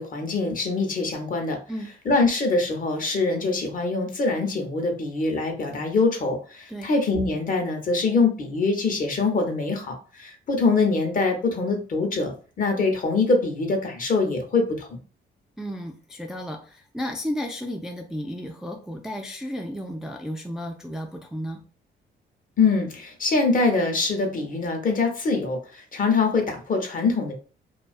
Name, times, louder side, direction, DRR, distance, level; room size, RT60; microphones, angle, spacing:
voice 1, 0.0-1.6 2.1-14.9 22.6-27.3, left 3 dB, 45° left, 3 dB, 0.7 m, -24 dB
voice 2, 15.6-21.6, equal, 5° right, 2 dB, 0.3 m, -33 dB
2.3 x 2.2 x 2.4 m, 0.38 s
cardioid pair, 90°, 20 cm